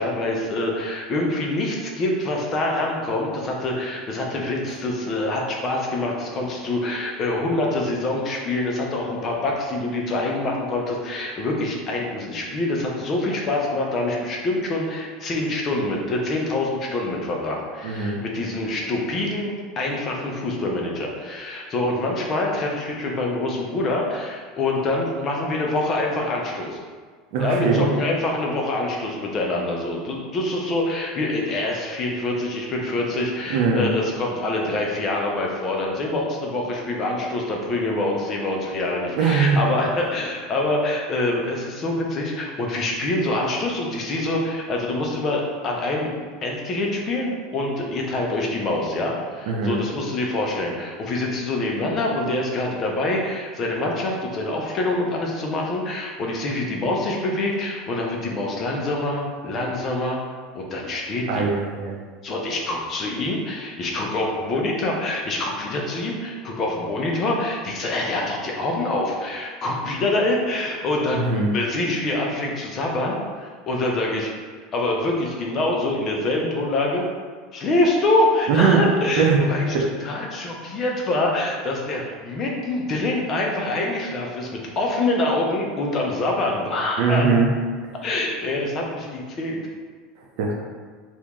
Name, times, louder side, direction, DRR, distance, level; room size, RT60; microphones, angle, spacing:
voice 1, 0.0-26.8 27.4-46.1 46.4-60.2 60.5-61.5 62.2-74.3 74.7-77.1 77.5-87.2 88.0-89.6, left 2 dB, 35° left, -1 dB, 0.6 m, -25 dB
voice 2, 17.8-18.2 27.3-27.9 33.5-33.9 39.2-39.7 49.5-49.8 61.3-62.0 71.1-71.5 78.5-78.8 79.2-79.5 79.7-79.8 87.0-87.5 90.4-90.5, right 5 dB, 65° right, 0 dB, 0.6 m, -20 dB
2.9 x 2.6 x 3.5 m, 1.5 s
supercardioid pair, 135°, 0 cm